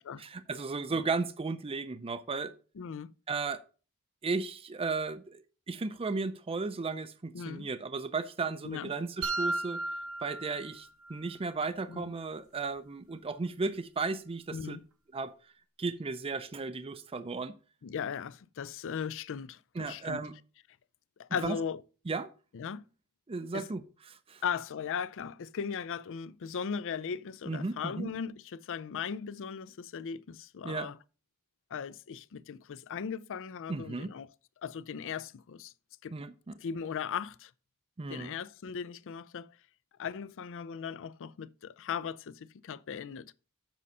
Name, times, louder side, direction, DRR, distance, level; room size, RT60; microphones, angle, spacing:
voice 1, 0.2-2.5 3.3-3.6 4.2-5.4 5.7-9.8 10.2-14.8 15.1-15.3 15.8-17.5 19.8-20.3 21.4-21.6 22.1-22.3 23.3-23.8 24.1-24.4 27.5-28.1 30.6-30.9 33.7-34.1 36.1-36.5 38.0-38.3, right 4 dB, 25° right, 0.5 m, -35 dB
voice 2, 2.8-3.1 7.3-7.7 8.6-8.9 11.9-12.0 14.5-14.8 17.8-20.2 21.2-21.8 22.5-22.9 23.5-23.6 24.4-31.0 31.7-34.3 34.6-35.7 36.0-36.1 36.6-37.5 38.1-39.6 40.0-43.3, left 7 dB, 60° left, 0.4 m, -38 dB
sound 1, 9.2-11.2, right 2 dB, 65° right, 1.0 m, -35 dB
7.7 x 5.4 x 5.4 m
head